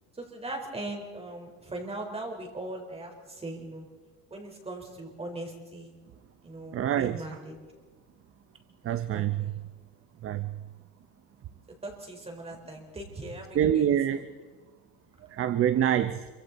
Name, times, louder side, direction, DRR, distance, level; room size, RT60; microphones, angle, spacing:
voice 1, 0.2-3.8 4.3-5.9 6.4-7.6 9.1-9.5 11.8-13.8, right 2 dB, 15° right, 2 dB, 4.3 m, -39 dB
voice 2, 6.7-7.3 8.8-9.6 10.2-10.6 13.5-14.3 15.3-16.3, right 10 dB, 35° right, 11 dB, 0.7 m, -26 dB
27.0 x 24.5 x 4.1 m, 1.4 s
cardioid pair, 145°, 38 cm